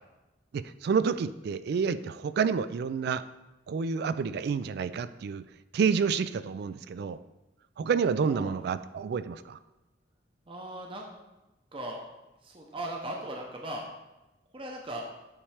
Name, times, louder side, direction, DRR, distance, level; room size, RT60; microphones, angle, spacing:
voice 1, 0.5-3.2 3.7-5.4 5.7-7.2 7.8-9.6, right 6 dB, 60° right, 13 dB, 0.3 m, -29 dB
voice 2, 10.5-11.1 11.7-12.0 12.4-13.8 14.5-15.0, right 1 dB, 30° right, 0 dB, 0.7 m, -38 dB
8.8 x 3.2 x 4.8 m, 1.0 s
head